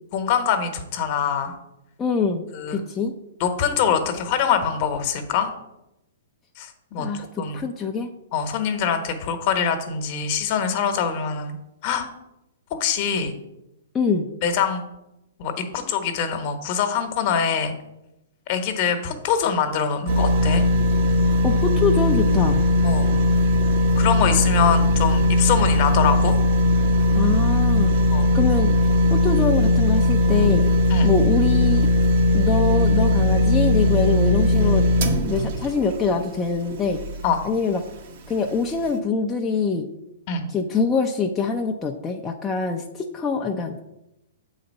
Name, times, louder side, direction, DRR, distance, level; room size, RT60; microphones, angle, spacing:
voice 1, 0.1-1.5 2.5-2.8 3.4-5.5 6.6-7.1 7.4-7.6 8.3-11.6 11.8-12.1 12.7-13.3 14.4-14.8 15.4-17.7 18.5-20.6 22.8-23.1 24.0-26.4 28.1-28.3 30.9-31.1 37.2-37.4 40.3-40.5, left 7 dB, 45° left, 7 dB, 1.1 m, -24 dB
voice 2, 2.0-3.1 7.0-8.1 13.9-14.3 21.4-22.6 27.1-27.9 28.3-28.7 29.1-30.6 31.0-31.9 32.3-34.9 35.3-37.0 37.4-37.8 38.3-39.9 40.5-43.8, left 4 dB, 15° left, 1 dB, 0.5 m, -24 dB
sound 1, 20.1-37.3 37.8-37.9, left 1 dB, 50° right, 0.9 m, -19 dB
7.6 x 4.0 x 5.4 m, 0.89 s
hypercardioid pair, 135°, 0 cm